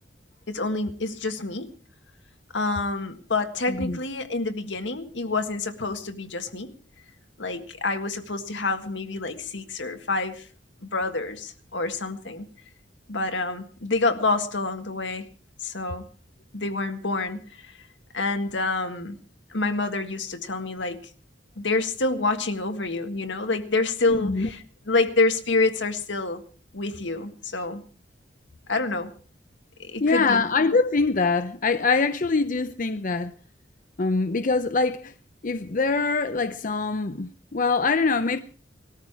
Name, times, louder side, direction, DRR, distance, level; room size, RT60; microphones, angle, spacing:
voice 1, 0.5-1.7 2.5-6.7 7.4-10.5 10.8-12.4 13.1-15.3 15.6-16.1 16.5-17.7 18.1-19.2 19.5-21.0 21.6-24.6 24.9-26.4 26.7-27.8 28.7-29.1 29.8-30.4, left 3 dB, 80° left, 1.8 m, -27 dB
voice 2, 3.7-4.0 24.1-24.5 30.0-33.3 34.0-35.1 35.4-38.4, left 4 dB, 45° left, 0.7 m, -24 dB
20.5 x 14.0 x 4.8 m
head